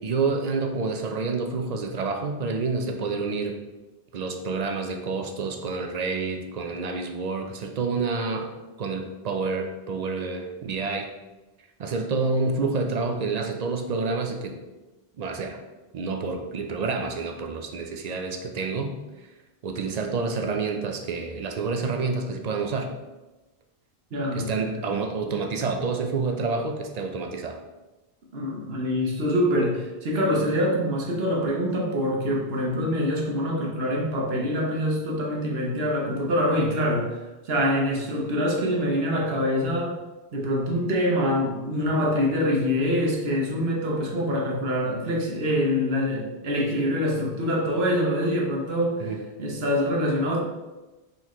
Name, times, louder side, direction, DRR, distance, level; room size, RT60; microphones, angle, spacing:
voice 1, 0.0-3.6 4.1-8.5 8.8-11.1 11.8-14.6 15.2-15.6 15.9-18.9 19.6-22.9 24.3-27.6 49.0-49.2, right 4 dB, 55° right, 4 dB, 0.5 m, -28 dB
voice 2, 24.1-24.8 28.3-37.2 37.4-40.0 40.3-49.1 49.4-50.4, equal, 70° right, -1 dB, 1.1 m, -25 dB
4.2 x 3.8 x 3.0 m, 1.1 s
omnidirectional pair, 1.1 m